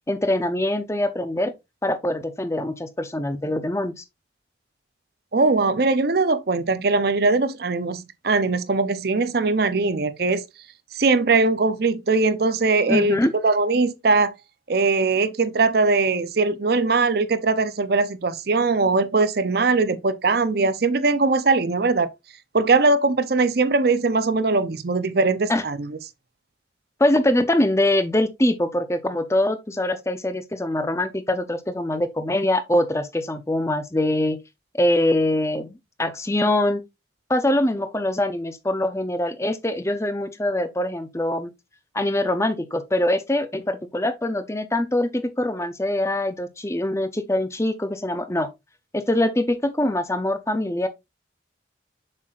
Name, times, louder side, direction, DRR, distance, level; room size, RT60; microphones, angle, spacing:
voice 1, 0.1-1.5 1.8-4.0 12.9-13.3 25.5-25.6 27.0-34.4 34.8-35.7 36.0-36.8 37.3-41.5 41.9-48.5 48.9-50.9, left 1 dB, 15° left, 0.7 m, -23 dB
voice 2, 5.3-10.4 10.9-14.3 14.7-22.1 22.5-26.0, right 3 dB, 55° right, 0.6 m, -21 dB
7.4 x 6.0 x 2.4 m
head